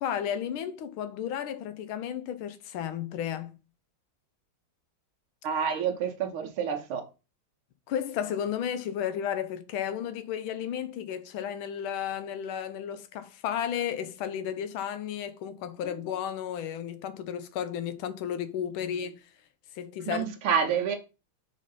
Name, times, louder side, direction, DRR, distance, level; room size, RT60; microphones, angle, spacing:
voice 1, 0.0-3.6 7.9-19.2 19.7-20.2, left 9 dB, 80° left, 1.5 m, -33 dB
voice 2, 5.4-7.0 20.1-21.0, right 7 dB, 80° right, 2.0 m, -28 dB
6.4 x 3.9 x 5.4 m
omnidirectional pair, 2.3 m